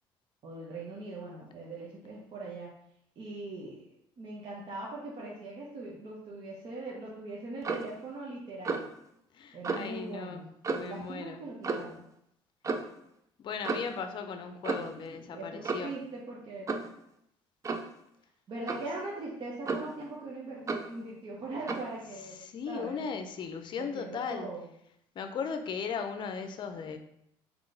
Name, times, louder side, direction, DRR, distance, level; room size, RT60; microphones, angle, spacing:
voice 1, 0.4-2.7 3.2-3.9 4.2-8.9 9.5-10.5 10.8-12.0 14.8-16.7 18.5-22.4 22.7-23.0 23.8-24.7 26.7-27.0, right 2 dB, 50° right, -4 dB, 1.0 m, -41 dB
Clock, 7.6-7.9 8.6-8.9 9.6-9.9 10.6-11.0 11.6-11.9 12.6-12.9 13.6-14.0 14.6-15.0 15.6-16.0 16.7-16.9 17.6-17.9 18.7-18.9 19.6-20.0 20.7-20.9 21.7-21.9, right 4 dB, 30° right, 0.4 m, -33 dB
voice 2, 9.3-10.4 10.7-11.4 13.4-15.9 22.4-24.5 25.2-27.0, left 6 dB, 50° left, 7 dB, 0.6 m, -37 dB
3.7 x 3.0 x 3.8 m, 0.75 s
cardioid pair, 95°, 11 cm